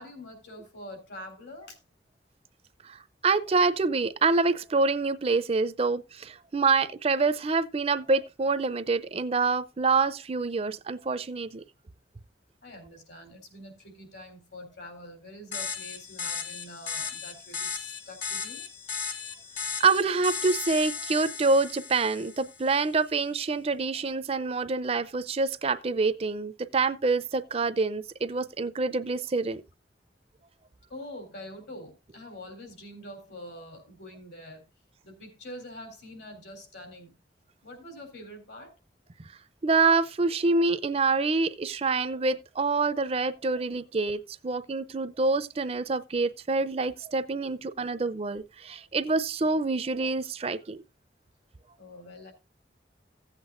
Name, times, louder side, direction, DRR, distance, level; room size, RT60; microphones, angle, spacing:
voice 1, 0.0-1.8 12.6-18.7 30.9-34.6 35.0-37.2 37.6-38.8 51.8-52.3, left 1 dB, 75° left, 3.8 m, -45 dB
voice 2, 2.8-11.6 19.8-29.6 39.6-50.8, right 4 dB, 35° right, 0.5 m, -26 dB
sound 1, 15.5-22.7, left 6 dB, 50° left, 1.4 m, -36 dB
15.5 x 8.2 x 2.5 m
head